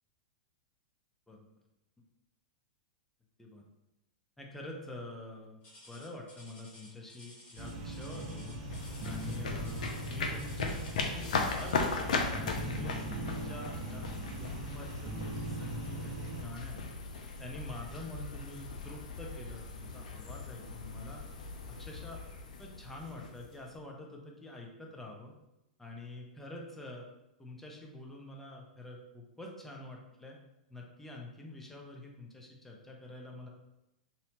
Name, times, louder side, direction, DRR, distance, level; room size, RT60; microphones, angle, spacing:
voice 1, 4.4-5.6 5.9-8.6 9.0-10.7 11.1-14.1 14.4-16.9 17.4-21.2 21.7-22.2 22.6-25.3 25.8-27.1 27.4-30.4 30.7-33.5, left 2 dB, 5° left, -1 dB, 0.5 m, -46 dB
sound 1, 5.6-12.0 13.0-13.2 13.8-13.9 14.6-14.7, left 1 dB, 30° left, 1.1 m, -54 dB
sound 2, 7.6-16.4, right 1 dB, 45° right, 0.5 m, -40 dB
sound 3, 8.6-23.8, left 4 dB, 70° left, 0.4 m, -38 dB
2.7 x 2.1 x 2.8 m, 0.91 s
figure-of-eight pair, 100°, 4 cm